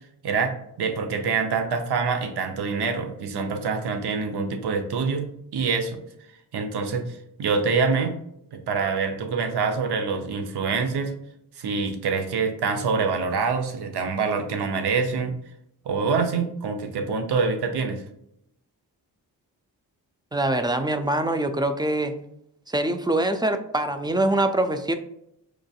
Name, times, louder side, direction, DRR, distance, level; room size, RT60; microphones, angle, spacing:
voice 1, 0.2-6.0 6.5-8.2 8.5-11.2 11.6-15.4 15.9-18.0, right 5 dB, 60° right, 6 dB, 0.7 m, -25 dB
voice 2, 20.3-22.1 22.7-24.9, right 1 dB, 10° right, 7 dB, 0.3 m, -24 dB
4.8 x 2.5 x 2.3 m, 0.78 s
supercardioid pair, 45°, 45 cm